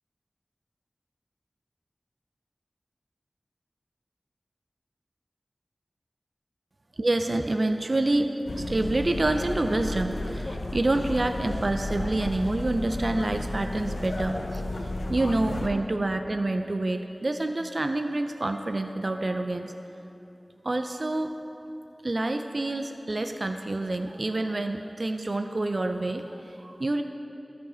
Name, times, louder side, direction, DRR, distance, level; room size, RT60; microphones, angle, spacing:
voice 1, 7.0-8.3 8.5-19.7 20.6-21.3 22.0-27.0, right 2 dB, 50° right, 7 dB, 0.4 m, -27 dB
sound 1, 8.5-15.7, left 1 dB, 80° left, 0.6 m, -33 dB
13.0 x 5.0 x 5.6 m, 2.9 s
wide cardioid pair, 60°, 0 cm